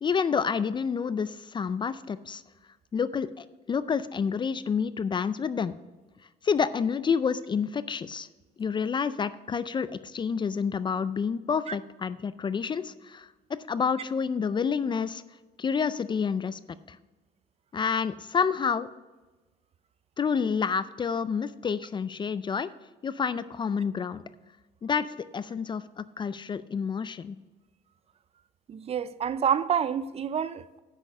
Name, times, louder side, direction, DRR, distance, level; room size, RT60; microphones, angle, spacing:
voice 1, 0.0-2.4 2.9-5.7 6.4-8.3 8.6-15.2 15.6-16.6 16.9-17.0 17.7-18.9 20.2-22.7 23.0-24.2 24.8-27.4, left 6 dB, 25° left, 0.4 m, -29 dB
voice 2, 28.7-30.8, right 8 dB, 35° right, 0.5 m, -28 dB
9.7 x 6.5 x 5.5 m
cardioid pair, 110°, 17 cm